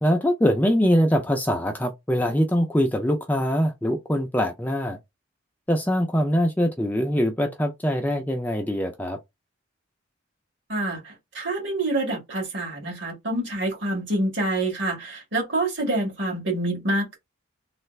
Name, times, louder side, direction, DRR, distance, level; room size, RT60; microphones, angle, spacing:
voice 1, 0.0-5.0 5.7-9.2, equal, 10° left, 0.4 m, -23 dB
voice 2, 10.7-17.2, right 2 dB, 60° right, 1.8 m, -27 dB
3.2 x 2.4 x 3.1 m
head